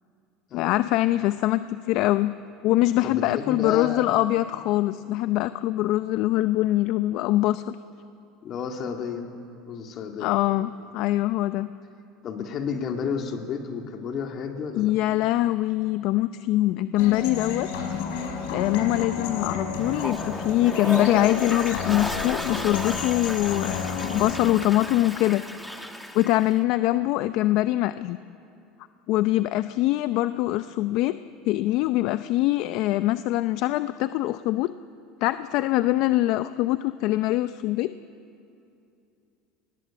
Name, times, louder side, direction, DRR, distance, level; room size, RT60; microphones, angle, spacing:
voice 1, 0.5-2.3 2.6-7.8 10.2-11.7 14.8-17.7 18.5-25.4 26.1-28.2 29.1-31.2 31.4-34.7 35.2-37.9, left 16 dB, 65° left, 13 dB, 0.5 m, -23 dB
voice 2, 3.0-4.1 8.4-9.3 9.7-10.3 12.2-14.9, left 6 dB, 45° left, 3 dB, 2.9 m, -31 dB
sound 1, 17.0-24.3, left 5 dB, 80° left, 4.9 m, -31 dB
Toilet flush, 19.8-26.6, equal, 5° left, 1.8 m, -35 dB
26.5 x 20.0 x 7.6 m, 2.7 s
supercardioid pair, 110°, 0 cm